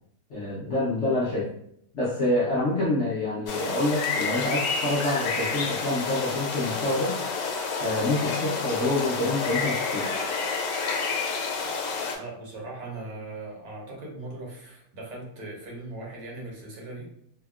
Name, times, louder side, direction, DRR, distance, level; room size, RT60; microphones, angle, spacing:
voice 1, 0.3-1.5 1.9-7.2 7.8-10.2, left 2 dB, 60° left, -6 dB, 0.7 m, -27 dB
sound 1, 3.5-12.1, left 4 dB, 85° left, 1.2 m, -29 dB
voice 2, 12.1-17.1, right 2 dB, 85° right, -2 dB, 1.5 m, -39 dB
3.4 x 2.2 x 2.3 m, 0.70 s
omnidirectional pair, 1.8 m